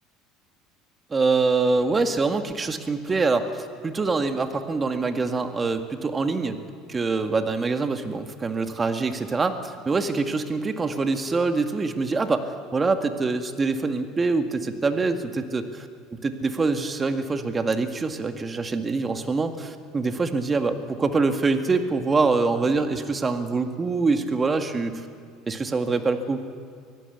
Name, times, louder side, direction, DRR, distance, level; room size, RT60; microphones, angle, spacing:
voice 1, 1.1-6.6 6.9-15.9 16.2-25.0 25.5-26.5, right 3 dB, 25° right, 7 dB, 2.0 m, -25 dB
24.0 x 16.0 x 8.3 m, 2.3 s
hypercardioid pair, 85°, 0 cm